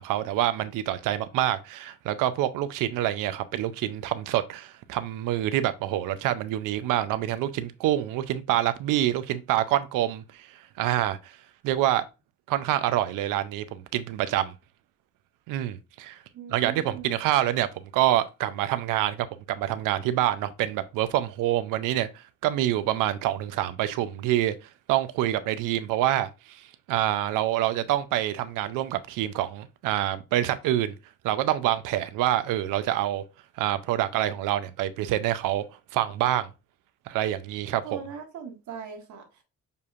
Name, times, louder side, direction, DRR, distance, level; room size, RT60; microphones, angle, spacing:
voice 1, 0.0-10.5 10.8-11.3 11.6-12.0 12.5-14.5 15.5-16.2 16.5-24.5 24.9-30.9 31.2-33.2 33.6-35.6 35.9-36.5 37.1-37.8, right 13 dB, 85° right, 0.6 m, -26 dB
voice 2, 16.3-17.2 37.8-39.4, right 6 dB, 70° right, 1.5 m, -40 dB
6.8 x 2.7 x 2.5 m
supercardioid pair, 70°, 31 cm